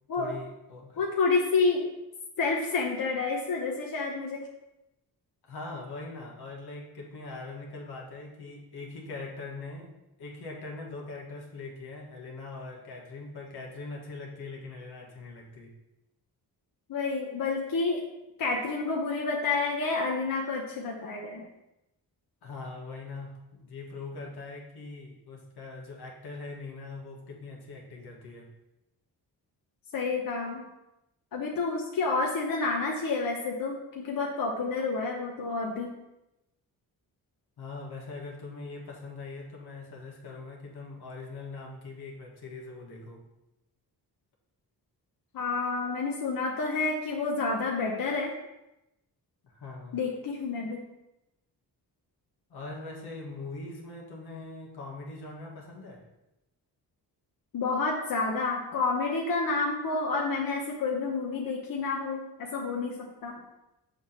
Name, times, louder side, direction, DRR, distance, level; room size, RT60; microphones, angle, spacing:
voice 1, 0.1-1.0 5.4-9.9 10.2-15.7 22.4-28.5 37.6-43.2 49.4-50.0 52.5-56.0, left 3 dB, 80° left, -1 dB, 1.7 m, -42 dB
voice 2, 1.0-1.9 2.4-4.5 16.9-18.0 18.4-21.4 29.9-30.6 31.3-35.9 45.3-48.3 49.9-50.8 57.5-63.4, left 4 dB, 60° left, -1 dB, 1.0 m, -29 dB
7.1 x 3.0 x 5.6 m, 0.93 s
cardioid pair, 85°, 38 cm